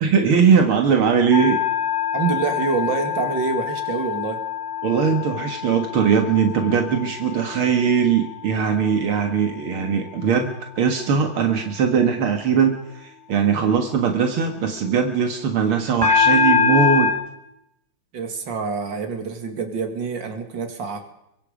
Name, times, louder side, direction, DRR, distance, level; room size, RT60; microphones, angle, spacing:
voice 1, 0.0-1.6 4.8-17.1, right 6 dB, 80° right, 4 dB, 2.5 m, -20 dB
sound 1, 1.3-9.6 10.0-10.4 16.0-17.1, left 7 dB, 35° right, 5.7 m, -24 dB
voice 2, 2.1-4.4 18.1-21.0, right 5 dB, 60° right, 5 dB, 2.9 m, -26 dB
23.5 x 23.0 x 5.1 m, 0.82 s
omnidirectional pair, 2.3 m